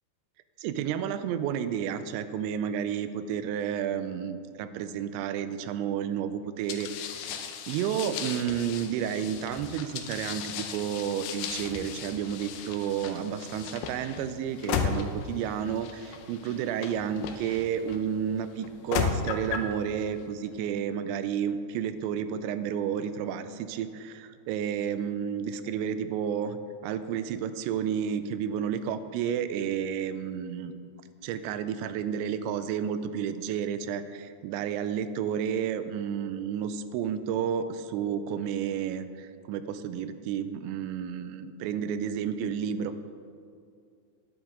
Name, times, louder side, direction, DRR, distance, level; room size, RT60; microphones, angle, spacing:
voice 1, 0.6-7.4 7.7-30.7 31.2-42.9, right 8 dB, 85° right, 11 dB, 2.8 m, -31 dB
sound 1, 6.7-18.0 18.6-19.7, left 7 dB, 85° left, 2.1 m, -35 dB
10.0 x 10.0 x 3.6 m, 2.4 s
omnidirectional pair, 5.1 m